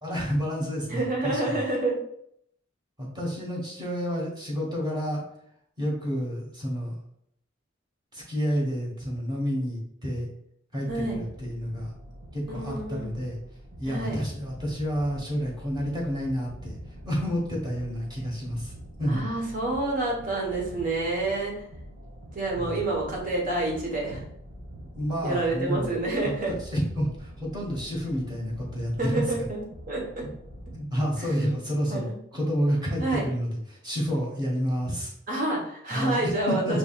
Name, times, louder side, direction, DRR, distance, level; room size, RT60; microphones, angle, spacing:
voice 1, 0.0-1.6 3.0-5.2 5.8-6.9 8.1-10.3 10.7-11.9 12.3-13.4 13.8-16.8 17.0-18.7 19.0-19.2 22.6-22.7 25.0-26.0 26.2-26.3 26.7-29.3 30.2-30.3 30.7-35.1 35.9-36.3 36.6-36.8, equal, 20° right, -3 dB, 1.3 m, -29 dB
voice 2, 0.9-2.0 10.9-11.2 12.5-13.1 13.8-14.2 19.1-21.5 22.3-24.2 25.2-26.5 29.0-29.6 29.9-30.3 31.9-32.0 33.0-33.2 35.3-36.8, right 2 dB, 45° right, -2 dB, 1.2 m, -28 dB
sound 1, 10.9-30.8, equal, 80° right, 1.1 m, -45 dB
5.0 x 3.2 x 2.4 m, 0.73 s
head